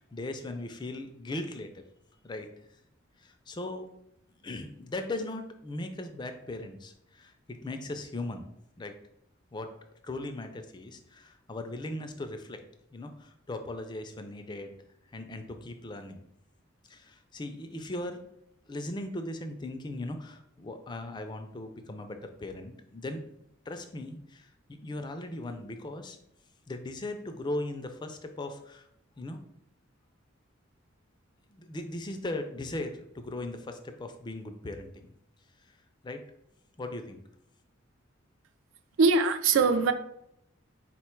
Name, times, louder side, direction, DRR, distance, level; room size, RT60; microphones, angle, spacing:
voice 1, 0.0-1.8 2.2-2.5 3.2-3.9 4.4-8.4 8.8-8.9 9.5-9.7 10.0-12.6 12.9-14.8 15.1-16.2 16.9-18.2 18.7-26.2 26.7-28.9 29.2-29.4 31.5-35.1 35.7-35.8 36.0-36.2 36.8-37.2, left 2 dB, 20° left, 0.3 m, -38 dB
voice 2, 39.0-39.9, right 4 dB, 70° right, 0.4 m, -22 dB
4.1 x 2.1 x 4.4 m
head